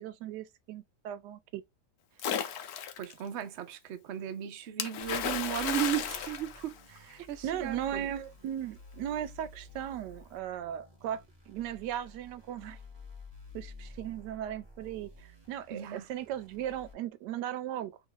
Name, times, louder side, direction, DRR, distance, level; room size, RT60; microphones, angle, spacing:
voice 1, 0.0-1.6 7.4-12.8 13.5-18.0, right 11 dB, 85° right, 1.2 m, -37 dB
Splash splatter, 2.2-3.1 4.8-7.2, left 8 dB, 70° left, 1.0 m, -34 dB
voice 2, 3.0-8.1 15.7-16.1, right 10 dB, 65° right, 0.7 m, -36 dB
sound 1, 5.0-16.9, left 3 dB, 25° right, 0.7 m, -52 dB
3.1 x 2.5 x 3.7 m
omnidirectional pair, 1.8 m